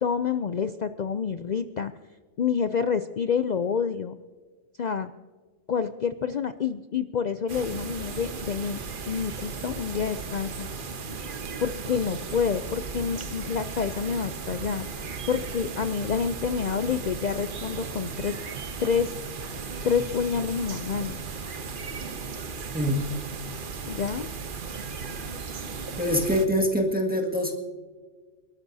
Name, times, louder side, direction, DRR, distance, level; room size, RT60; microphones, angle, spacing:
voice 1, 0.0-1.9 2.4-4.2 4.8-5.1 5.7-10.7 11.6-14.9 15.3-18.4 18.8-19.1 19.8-21.2 23.9-24.3, left 6 dB, 75° left, 10 dB, 0.4 m, -28 dB
sound 1, 7.5-26.5, right 5 dB, 45° right, 1.0 m, -36 dB
voice 2, 22.7-23.1 26.0-27.5, equal, 5° right, 0 dB, 1.7 m, -24 dB
28.5 x 12.5 x 2.7 m, 1.5 s
omnidirectional pair, 1.3 m